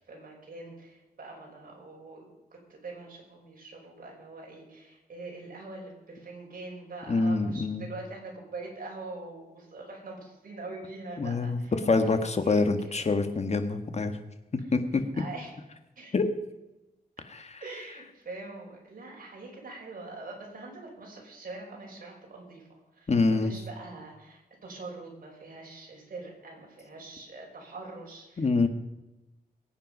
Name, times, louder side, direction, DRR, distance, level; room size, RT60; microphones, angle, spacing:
voice 1, 0.1-2.2 2.5-13.1 15.1-15.5 16.0-16.1 17.6-22.6 22.9-28.7, right 3 dB, 60° right, -1 dB, 5.4 m, -44 dB
voice 2, 7.1-7.9 11.2-11.6 11.9-14.2 14.7-15.0 16.1-16.3 17.3-17.6 23.1-23.5 28.4-28.7, left 3 dB, 40° left, 8 dB, 1.5 m, -26 dB
22.0 x 9.1 x 5.4 m, 0.99 s
wide cardioid pair, 105°, 16 cm